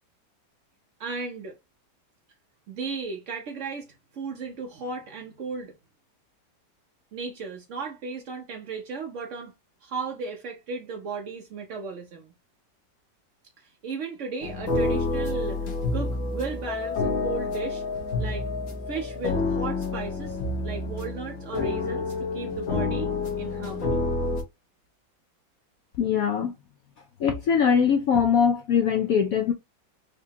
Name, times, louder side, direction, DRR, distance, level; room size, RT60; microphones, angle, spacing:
voice 1, 1.0-1.6 2.7-5.7 7.1-9.5 9.8-12.3 13.6-17.8 18.2-18.5 18.9-23.1 23.4-24.1, right 4 dB, 70° right, 0.7 m, -35 dB
sound 1, 14.4-24.4, left 3 dB, 55° left, 1.0 m, -28 dB
voice 2, 26.0-26.5 27.2-29.5, left 7 dB, 80° left, 0.7 m, -22 dB
4.7 x 2.2 x 2.7 m
omnidirectional pair, 2.1 m